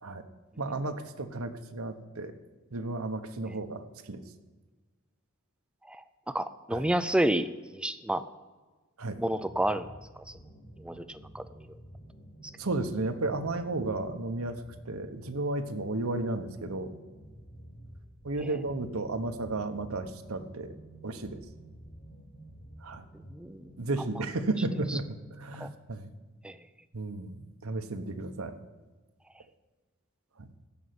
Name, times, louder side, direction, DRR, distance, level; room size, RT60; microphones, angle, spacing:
voice 1, 0.6-2.3 2.7-4.2 6.7-6.8 9.0-9.2 12.6-14.6 14.9-16.9 18.2-20.7 21.0-21.4 22.8-23.0 23.8-26.1 26.9-28.5 30.4-30.5, right 2 dB, 85° right, 8 dB, 1.1 m, -33 dB
voice 2, 5.9-7.5 7.7-8.2 9.2-9.9 10.8-11.5 18.4-18.5 23.3-23.7 25.6-25.7 26.4-26.6, right 1 dB, 5° right, 13 dB, 0.4 m, -30 dB
sound 1, 9.3-23.8, right 1 dB, 60° left, 4.3 m, -50 dB
15.5 x 5.5 x 9.5 m, 1.3 s
head